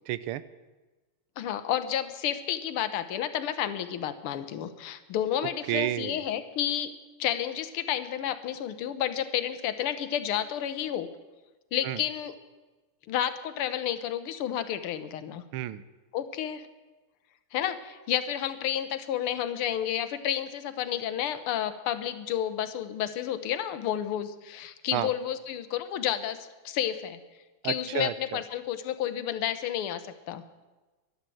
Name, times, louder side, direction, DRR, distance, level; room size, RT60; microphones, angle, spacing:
voice 1, 0.1-0.4 5.7-6.2 11.8-12.0 15.5-15.8 24.9-25.1 27.6-28.4, right 13 dB, 80° right, 16 dB, 1.5 m, -31 dB
voice 2, 1.4-6.9 7.2-11.1 11.7-12.4 13.1-15.4 16.1-16.7 17.5-26.4 26.7-27.2 27.6-30.0 30.3-30.4, left 10 dB, 85° left, 11 dB, 1.8 m, -31 dB
12.0 x 11.5 x 7.7 m, 1.2 s
omnidirectional pair, 2.4 m